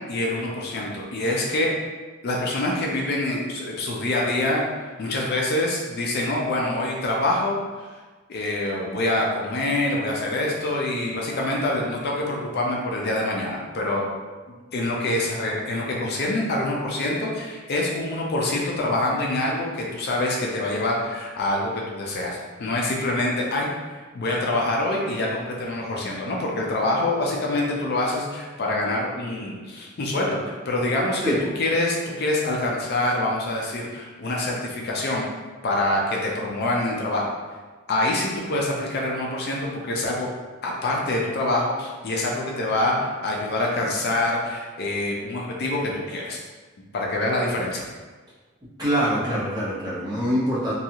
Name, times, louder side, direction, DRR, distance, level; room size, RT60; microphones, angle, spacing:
voice 1, 0.1-1.7 2.2-4.6 5.0-7.9 8.3-14.1 14.7-23.7 24.1-35.2 35.6-37.3 37.9-40.3 40.6-46.4 46.9-47.9, left 1 dB, 45° left, -2 dB, 0.4 m, -25 dB
voice 2, 48.8-50.7, equal, 20° right, -8 dB, 0.7 m, -24 dB
2.6 x 2.3 x 2.8 m, 1.3 s
head